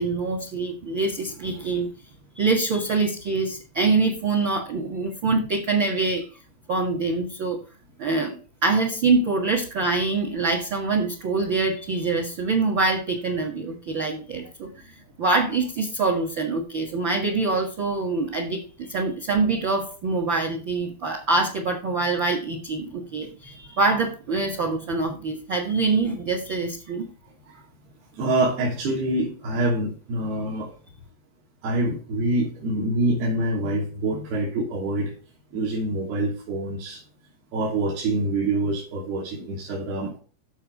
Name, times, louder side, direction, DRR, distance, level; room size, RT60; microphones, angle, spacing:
voice 1, 0.0-1.9 2.3-6.3 6.7-7.6 8.0-8.4 8.6-27.0, right 3 dB, 50° right, 5 dB, 1.5 m, -25 dB
voice 2, 28.1-30.7 31.6-35.1 35.5-37.0 37.5-40.2, right 2 dB, 70° right, -4 dB, 4.9 m, -26 dB
14.0 x 4.8 x 4.7 m, 0.36 s
omnidirectional pair, 4.8 m